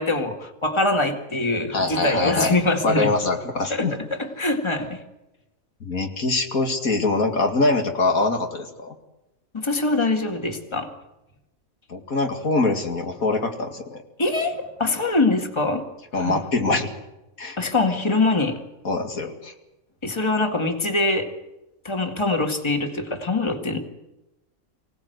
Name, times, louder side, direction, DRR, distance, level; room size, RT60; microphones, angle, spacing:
voice 1, 0.0-3.1 3.7-5.0 9.5-10.9 14.2-15.9 16.2-16.4 17.6-18.6 20.0-21.3 21.8-23.8, left 2 dB, 20° left, 5 dB, 2.0 m, -23 dB
voice 2, 1.7-2.5 2.8-3.9 5.8-9.0 11.9-14.0 16.1-16.9 17.4-17.6 18.8-19.5, left 3 dB, 85° left, 4 dB, 2.7 m, -23 dB
25.0 x 17.5 x 8.0 m, 0.98 s
omnidirectional pair, 1.4 m